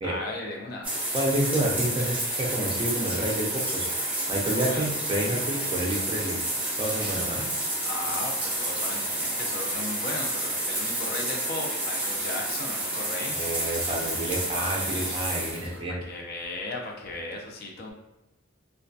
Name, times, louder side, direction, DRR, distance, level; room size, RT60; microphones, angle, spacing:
voice 1, 0.0-0.9 4.5-4.9 7.8-13.4 15.9-17.9, left 2 dB, 55° left, 0 dB, 0.5 m, -36 dB
sound 1, 0.8-15.8, right 1 dB, 10° right, 0.8 m, -30 dB
voice 2, 1.1-3.9 4.3-6.4 6.8-7.5 13.3-16.0, right 1 dB, 25° right, -1 dB, 0.4 m, -29 dB
2.2 x 2.1 x 2.6 m, 0.99 s
head